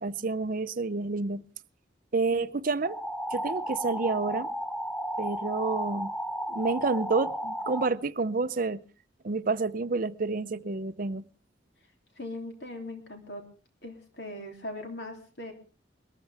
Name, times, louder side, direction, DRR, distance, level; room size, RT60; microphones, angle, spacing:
voice 1, 0.0-1.4 2.1-3.0 3.3-4.5 5.2-6.1 6.5-8.8 9.2-11.2, right 3 dB, 45° right, 0.6 m, -29 dB
sound 1, 2.8-7.9, equal, 5° left, 0.6 m, -33 dB
voice 2, 12.2-13.5 13.8-15.5, left 1 dB, 60° left, 3.1 m, -40 dB
22.5 x 13.5 x 3.5 m
head